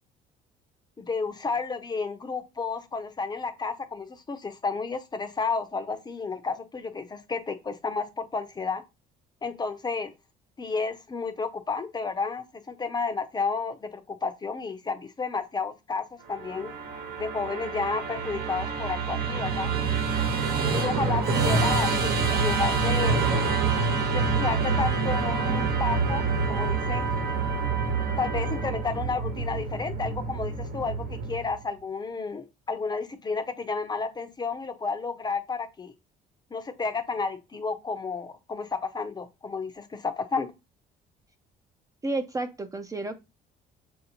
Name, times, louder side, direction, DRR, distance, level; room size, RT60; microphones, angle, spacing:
voice 1, 1.0-8.8 9.4-10.1 10.6-16.7 17.2-19.7 20.6-23.2 24.1-27.1 28.2-35.9 36.5-40.5, left 4 dB, 25° left, 0.6 m, -31 dB
Musical instrument, 16.3-31.6, right 4 dB, 65° right, 1.1 m, -27 dB
voice 2, 42.0-43.2, right 2 dB, 20° right, 0.5 m, -31 dB
6.2 x 2.7 x 2.9 m
cardioid pair, 110°, 17 cm